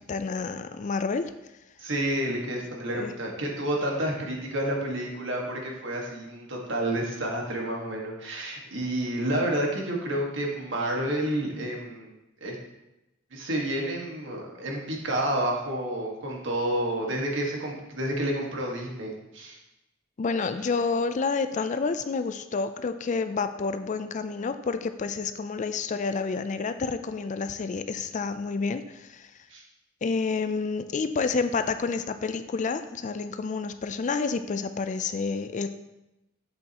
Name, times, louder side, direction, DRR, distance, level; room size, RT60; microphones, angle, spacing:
voice 1, 0.1-1.3 2.9-3.1 20.2-29.3 30.0-35.7, left 4 dB, 40° left, 10 dB, 0.4 m, -29 dB
voice 2, 1.8-12.1 12.4-12.5 13.3-19.6 29.5-29.6, right 1 dB, 70° right, -1 dB, 1.6 m, -30 dB
7.7 x 7.2 x 2.9 m, 0.94 s
head